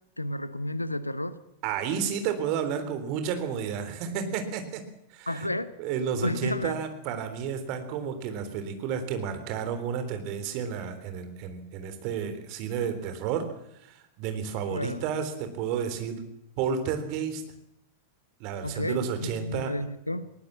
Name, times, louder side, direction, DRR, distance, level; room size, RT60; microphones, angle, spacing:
voice 1, 0.2-1.4 5.3-5.7 6.2-6.7 14.7-15.0 18.6-20.3, left 1 dB, 85° left, 15 dB, 1.0 m, -31 dB
voice 2, 1.6-4.8 5.1-5.5 5.8-13.5 13.8-16.2 16.6-17.4 18.4-19.8, right 7 dB, 45° right, 8 dB, 3.6 m, -31 dB
20.5 x 18.0 x 7.5 m, 0.81 s
figure-of-eight pair, 90°, 0 cm